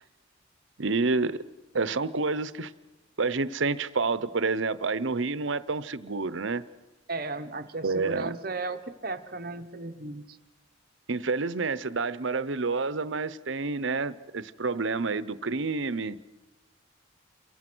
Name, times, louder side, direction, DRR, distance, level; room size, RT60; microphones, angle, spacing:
voice 1, 0.8-1.4 1.7-2.7 3.2-6.6 7.8-8.3 11.1-16.2, right 3 dB, 70° right, 16 dB, 0.8 m, -28 dB
voice 2, 7.1-10.4, right 3 dB, 45° right, 10 dB, 1.1 m, -35 dB
28.5 x 23.0 x 6.2 m, 1.1 s
head